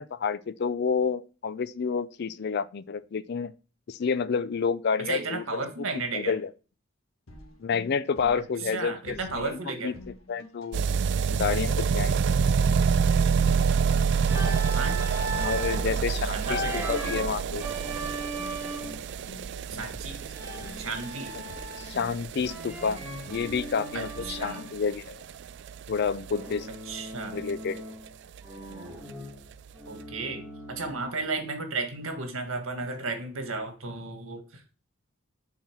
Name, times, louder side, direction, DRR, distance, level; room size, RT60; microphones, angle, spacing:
voice 1, 0.0-3.5 3.9-5.6 6.1-6.5 7.6-9.5 9.8-9.9 10.3-10.8 11.3-12.2 15.4-17.6 21.3-21.4 21.8-23.0 23.3-25.2 25.9-26.7 27.3-27.8, left 5 dB, 50° left, 0.4 m, -29 dB
voice 2, 5.1-6.3 8.7-9.9 14.7-15.1 15.7-16.9 19.7-20.2 20.7-21.4 23.9-24.6 26.9-27.5 29.9-34.6, right 3 dB, 80° right, 1.7 m, -34 dB
sound 1, 7.3-24.9, left 1 dB, 90° left, 1.5 m, -48 dB
sound 2, 10.7-27.5 27.8-27.9 28.1-28.2 28.4-28.5 28.7-28.8 29.5-29.6, right 6 dB, 55° right, 0.3 m, -28 dB
Organ, 14.2-15.9 16.4-19.1 20.3-22.1 22.4-24.7 26.3-28.1 28.4-31.1, right 1 dB, 10° right, 2.0 m, -38 dB
7.1 x 4.0 x 6.0 m
head